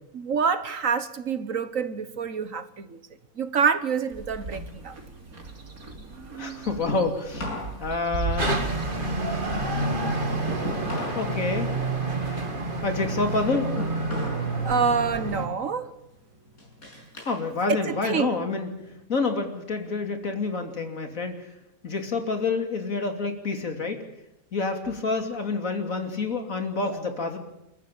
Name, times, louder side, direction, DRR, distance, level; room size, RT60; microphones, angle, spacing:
voice 1, 0.1-3.0 3.4-5.0 14.1-15.9 17.9-18.3 26.8-27.0, right 6 dB, 65° right, 1.7 m, -27 dB
sound 1, 4.1-9.8, right 3 dB, 80° right, 3.3 m, -37 dB
sound 2, 4.6-7.8 8.1-11.3 11.6-14.5 14.9-15.3 15.8-17.4 17.8-19.0, left 1 dB, 85° left, 6.9 m, -37 dB
voice 2, 6.4-7.5 7.8-8.7 11.1-11.7 12.8-13.7 17.2-18.7 19.1-21.5 21.8-24.0 24.5-27.4, left 3 dB, 65° left, 3.3 m, -28 dB
sound 3, 8.4-15.5, right 2 dB, 35° right, 2.6 m, -28 dB
28.5 x 14.5 x 8.9 m
omnidirectional pair, 1.5 m